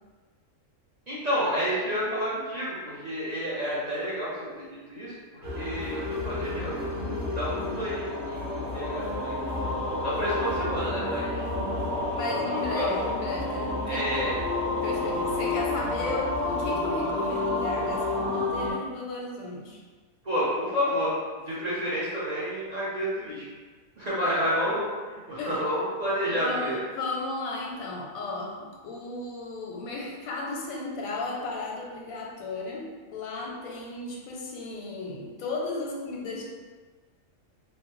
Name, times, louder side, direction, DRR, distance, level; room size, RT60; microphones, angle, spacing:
voice 1, 1.1-4.3 4.6-6.9 7.3-9.3 10.0-11.5 12.1-12.9 13.9-14.3 20.2-21.1 21.4-23.4 24.0-24.8 25.1-26.8, equal, 40° right, -10 dB, 0.6 m, -30 dB
sound 1, 5.4-18.7, left 2 dB, 70° right, 1.4 m, -30 dB
voice 2, 12.1-19.8 25.4-25.6 26.2-36.4, left 3 dB, 90° left, -1 dB, 1.0 m, -35 dB
3.1 x 2.0 x 3.0 m, 1.4 s
omnidirectional pair, 1.4 m